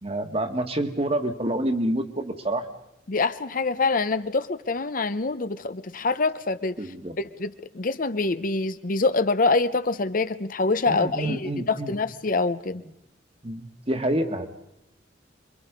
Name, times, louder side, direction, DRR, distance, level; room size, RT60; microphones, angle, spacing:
voice 1, 0.0-2.7 6.8-7.2 10.9-11.9 13.4-14.5, right 1 dB, 35° right, 6 dB, 1.8 m, -27 dB
voice 2, 3.1-6.8 7.2-12.8, left 3 dB, 50° left, 12 dB, 0.8 m, -25 dB
27.0 x 23.5 x 5.3 m, 0.85 s
head